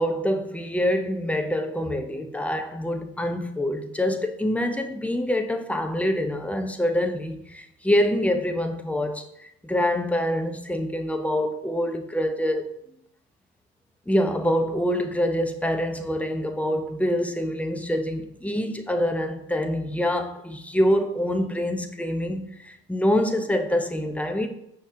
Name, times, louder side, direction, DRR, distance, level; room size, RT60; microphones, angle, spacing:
voice 1, 0.0-12.7 14.1-24.5, equal, 5° left, 0.5 m, -25 dB
5.3 x 2.8 x 3.7 m
hypercardioid pair, 60°, 33 cm